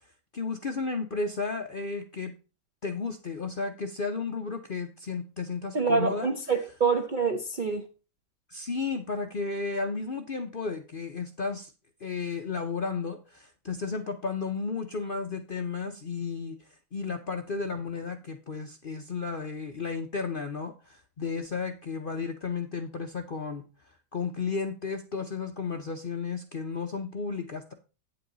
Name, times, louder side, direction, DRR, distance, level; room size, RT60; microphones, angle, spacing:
voice 1, 0.3-2.3 2.8-6.3 8.5-11.7 12.0-16.6 16.9-23.6 24.1-27.7, left 4 dB, 50° left, 0.7 m, -33 dB
voice 2, 5.7-7.9, right 5 dB, 45° right, 0.6 m, -26 dB
8.8 x 7.8 x 3.9 m
omnidirectional pair, 1.8 m